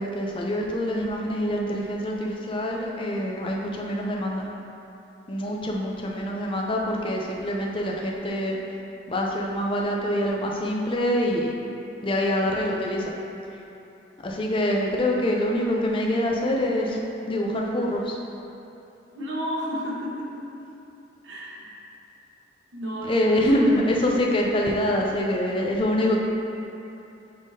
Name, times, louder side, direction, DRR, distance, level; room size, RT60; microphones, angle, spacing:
voice 1, 0.0-4.5 5.3-8.6 9.1-11.5 12.0-13.1 14.2-17.0 17.3-18.2 23.1-26.2, left 1 dB, 25° left, -1 dB, 0.5 m, -25 dB
voice 2, 19.1-20.3 21.2-21.7 22.7-24.2 24.6-24.7, equal, 75° right, -5 dB, 1.0 m, -33 dB
9.7 x 3.6 x 2.7 m, 2.9 s
head